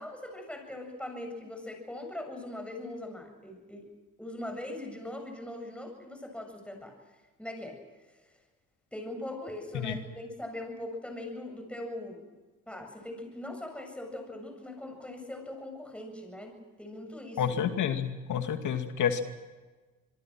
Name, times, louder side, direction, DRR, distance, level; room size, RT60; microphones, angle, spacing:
voice 1, 0.0-3.9 4.2-6.9 7.4-7.8 8.9-12.2 12.7-17.6, left 1 dB, 5° left, 4 dB, 7.8 m, -41 dB
voice 2, 17.4-19.2, left 8 dB, 75° left, 7 dB, 2.5 m, -29 dB
26.0 x 23.0 x 6.2 m, 1.3 s
cardioid pair, 90°, 30 cm